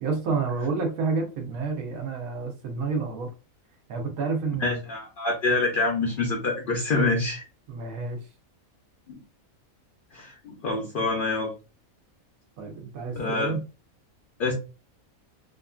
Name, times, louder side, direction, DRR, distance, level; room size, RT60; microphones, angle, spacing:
voice 1, 0.0-3.3 3.9-4.8 7.7-8.2 12.6-13.6, right 4 dB, 85° right, 1.1 m, -29 dB
voice 2, 4.6-7.4 9.1-9.2 10.1-11.6 13.1-13.6 14.4-14.5, left 3 dB, 60° left, 0.5 m, -26 dB
2.7 x 2.5 x 2.2 m
omnidirectional pair, 1.4 m